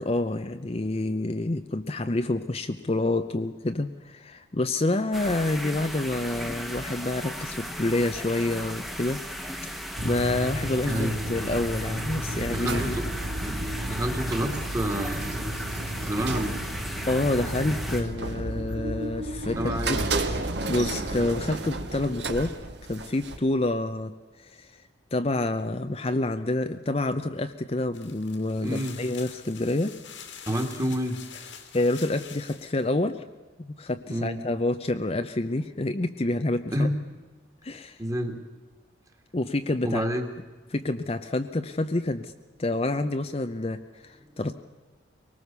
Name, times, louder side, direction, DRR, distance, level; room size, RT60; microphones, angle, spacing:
voice 1, 0.0-9.2 9.7-9.8 10.0-13.0 17.1-20.0 20.6-22.5 22.9-24.8 25.1-29.9 31.7-33.2 33.6-36.9 37.6-38.0 39.3-40.0 40.7-42.3 42.6-44.6, left 2 dB, 30° left, 8 dB, 0.7 m, -28 dB
sound 1, 5.1-18.0, equal, ahead, 1.2 m, -36 dB
sound 2, 9.9-23.4, right 2 dB, 60° right, 1.9 m, -32 dB
voice 2, 10.9-11.2 12.5-13.1 13.4-13.6 13.9-15.5 15.9-16.7 19.6-20.1 28.6-29.0 30.5-31.2 34.1-34.4 36.7-36.9 38.0-38.4 39.8-40.3, equal, 15° right, 5 dB, 2.0 m, -29 dB
sound 3, 27.9-32.8, left 7 dB, 80° left, 2.7 m, -45 dB
23.5 x 19.5 x 6.9 m, 1.3 s
head